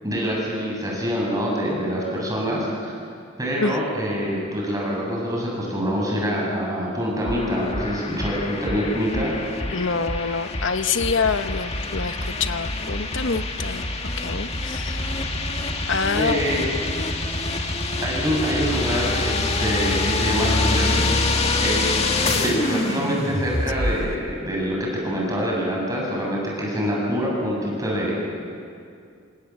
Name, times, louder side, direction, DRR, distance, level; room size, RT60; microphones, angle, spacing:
voice 1, 0.0-2.9 3.4-9.3 16.1-17.1 18.0-21.3 21.6-28.1, equal, 20° right, -3 dB, 7.5 m, -25 dB
sound 1, 7.3-24.1, left 2 dB, 30° left, 2.1 m, -26 dB
voice 2, 9.7-13.9 14.2-15.1 15.9-16.6, left 5 dB, 75° left, 10 dB, 1.0 m, -26 dB
28.0 x 26.5 x 7.4 m, 2.4 s
head